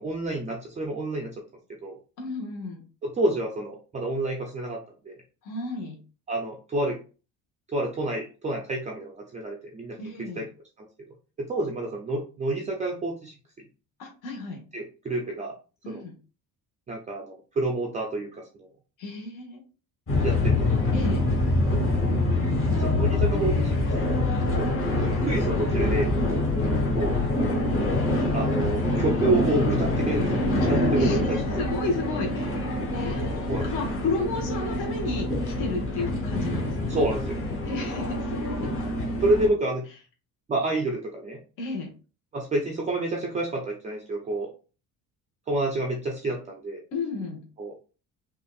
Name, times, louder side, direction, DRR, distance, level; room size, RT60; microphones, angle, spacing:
voice 1, 0.0-1.3 1.8-2.0 3.0-4.8 5.1-5.2 6.3-7.0 7.7-10.0 10.4-10.5 10.8-10.9 11.4-13.3 14.7-15.5 15.9-16.0 16.9-18.7 20.2-20.7 22.8-24.2 24.6-24.8 25.2-26.1 26.9-27.2 28.3-31.4 33.5-33.7 36.9-37.4 39.2-39.8 40.5-41.4 42.3-44.5 45.5-46.8 47.6-47.7, right 2 dB, 20° right, 1 dB, 0.4 m, -29 dB
voice 2, 2.2-2.8 5.4-6.0 10.0-10.5 14.0-14.6 15.8-16.1 19.0-19.6 20.9-21.2 30.6-37.0 37.6-38.7 41.6-41.9 46.9-47.4, left 3 dB, 55° left, 0 dB, 1.3 m, -33 dB
sound 1, 20.1-39.5, left 2 dB, 35° left, 1.4 m, -25 dB
5.3 x 2.5 x 2.3 m, 0.36 s
cardioid pair, 160°, 37 cm